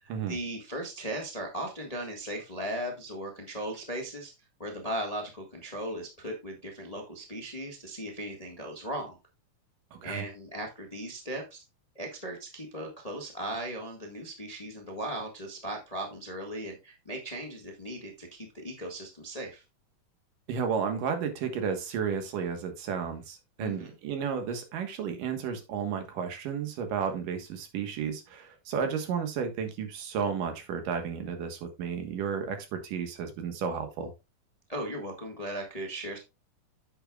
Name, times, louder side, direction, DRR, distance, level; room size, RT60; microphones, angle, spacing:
voice 1, 0.0-4.3 4.6-9.2 10.0-11.6 11.9-19.6 23.6-23.9 34.7-36.2, right 1 dB, 20° left, 1 dB, 0.9 m, -37 dB
voice 2, 9.9-10.2 20.5-34.1, right 6 dB, 80° right, 6 dB, 3.1 m, -32 dB
9.5 x 7.9 x 2.4 m, 0.25 s
omnidirectional pair, 3.8 m